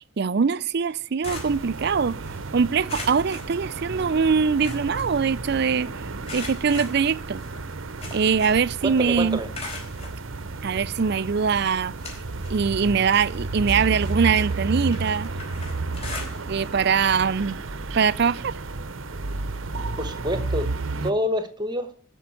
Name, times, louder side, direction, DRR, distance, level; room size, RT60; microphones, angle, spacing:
voice 1, 0.0-2.2 2.5-5.9 6.3-7.4 8.1-9.4 10.6-11.9 12.5-15.3 16.5-17.6 17.9-18.5, right 6 dB, 55° right, 0.4 m, -22 dB
sound 1, 0.8-2.4 2.9-4.2 4.4-5.8 6.2-8.7 9.0-10.2 10.9-11.0 11.5-12.6 12.9-16.7 17.0-17.2 17.6-17.7 18.9-19.0, left 3 dB, 30° left, 4.2 m, -40 dB
sound 2, 1.2-21.1, right 3 dB, 75° right, 0.9 m, -32 dB
voice 2, 8.8-9.5 20.0-20.7 21.0-21.9, equal, 20° right, 1.3 m, -27 dB
13.0 x 5.4 x 8.5 m
head